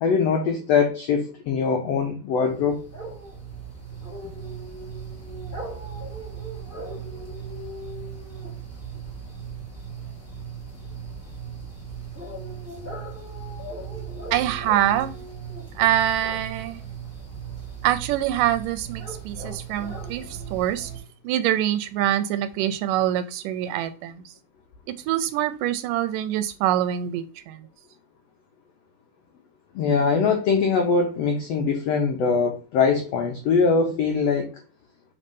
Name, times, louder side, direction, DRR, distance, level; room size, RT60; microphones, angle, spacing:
voice 1, 0.0-2.9 29.7-34.6, left 5 dB, 85° left, 3 dB, 1.4 m, -22 dB
sound 1, 2.4-21.0, right 5 dB, 10° left, 0.8 m, -37 dB
voice 2, 14.3-15.2 15.8-16.8 17.8-20.9 21.2-24.3 25.1-27.7, right 12 dB, 80° right, 12 dB, 2.0 m, -25 dB
4.3 x 4.2 x 5.2 m, 0.33 s
omnidirectional pair, 4.0 m